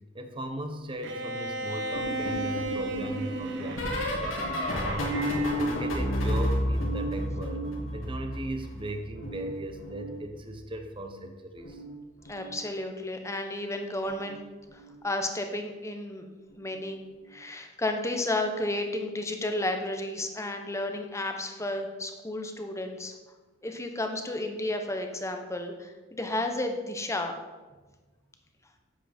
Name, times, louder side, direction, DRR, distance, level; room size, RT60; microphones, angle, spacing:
voice 1, 0.1-4.4 4.8-5.3 5.6-7.6 7.9-11.8, right 1 dB, 25° right, 6 dB, 0.9 m, -37 dB
Bowed string instrument, 1.0-5.7, right 1 dB, 65° right, 1.0 m, -36 dB
sound 1, 1.9-8.7 9.0-10.6 11.6-11.9 12.2-12.5 14.1-14.3 14.7-14.9 16.5-16.6, equal, 80° left, 2.5 m, -31 dB
voice 2, 12.2-14.4 14.7-16.2 16.6-17.0 17.3-23.1 23.6-27.3, left 1 dB, 15° left, 5 dB, 1.0 m, -32 dB
10.0 x 8.1 x 4.4 m, 1.2 s
head